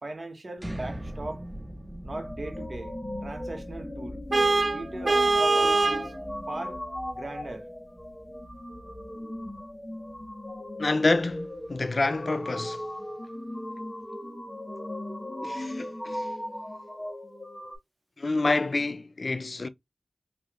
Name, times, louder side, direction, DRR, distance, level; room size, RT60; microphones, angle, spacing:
voice 1, 0.0-1.4 2.0-2.9 3.2-4.2 4.7-6.1 6.5-6.8 7.1-7.7, right 2 dB, 45° right, 1.4 m, -38 dB
sound 1, 0.6-12.4, equal, 25° right, 0.7 m, -43 dB
sound 2, 2.1-17.8, left 1 dB, 15° left, 1.2 m, -38 dB
Vehicle horn car horn honking, 4.3-6.1, right 3 dB, 65° right, 0.4 m, -22 dB
voice 2, 10.8-12.9 15.4-16.3 18.2-19.7, left 3 dB, 55° left, 0.5 m, -27 dB
4.6 x 2.7 x 2.5 m
wide cardioid pair, 55°, 0 cm